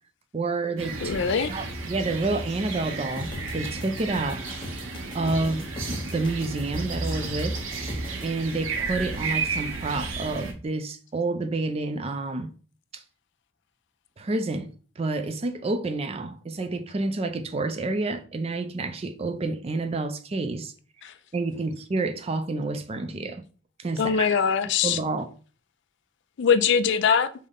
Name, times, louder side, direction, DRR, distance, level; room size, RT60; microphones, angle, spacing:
voice 1, 0.3-1.1 1.5-4.4 5.1-7.6 8.2-12.5 12.9-13.0 14.2-14.7 15.0-20.7 21.3-23.4 23.8-24.4 24.8-25.3, right 3 dB, 30° right, 0.4 m, -29 dB
sound 1, 0.8-10.5, right 3 dB, 75° right, 0.8 m, -33 dB
voice 2, 1.0-1.5 21.0-21.1 24.0-25.0 26.4-27.3, left 6 dB, 60° left, 0.4 m, -22 dB
sound 2, 3.2-8.3, left 2 dB, 25° left, 0.7 m, -40 dB
5.2 x 2.1 x 3.7 m
head